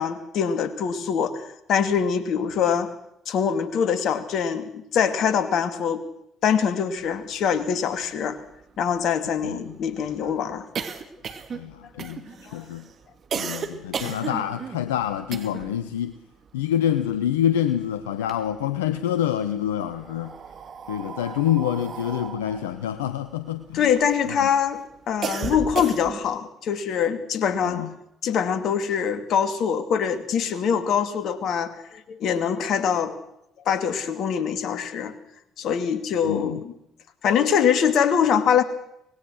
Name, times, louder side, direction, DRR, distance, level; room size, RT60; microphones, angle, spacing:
voice 1, 0.0-2.9 3.3-6.0 6.4-8.4 8.8-10.7 12.5-12.7 13.4-13.6 23.7-27.8 28.2-33.2 33.7-35.1 35.6-36.7 37.2-38.6, left 7 dB, 60° left, 11 dB, 2.5 m, -24 dB
sound 1, 7.6-7.7 8.0-8.1 8.4-15.8 16.1-17.7 18.0-19.0 19.7-24.2 24.6-26.4, right 6 dB, 50° right, 2.6 m, -35 dB
voice 2, 9.4-9.8 11.5-12.2 12.5-12.9 13.3-16.1 16.5-20.4 20.9-23.9 24.4-24.5 27.6-27.9 36.2-36.6, left 10 dB, 80° left, 12 dB, 0.9 m, -26 dB
25.0 x 20.0 x 6.4 m, 0.78 s
hypercardioid pair, 50°, 0 cm